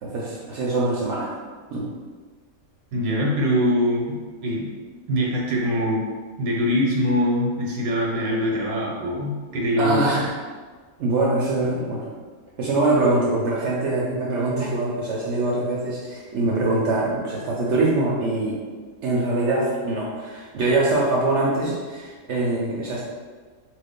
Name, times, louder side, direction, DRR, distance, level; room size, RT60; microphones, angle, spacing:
voice 1, 0.0-1.3 1.7-1.8 9.8-10.3 11.0-12.1 12.6-18.6 19.0-23.0, right 2 dB, 65° right, -4 dB, 0.8 m, -23 dB
voice 2, 2.9-4.7 5.1-6.0 6.4-10.2, equal, 80° right, -3 dB, 1.1 m, -23 dB
3.0 x 2.5 x 3.5 m, 1.5 s
omnidirectional pair, 1.5 m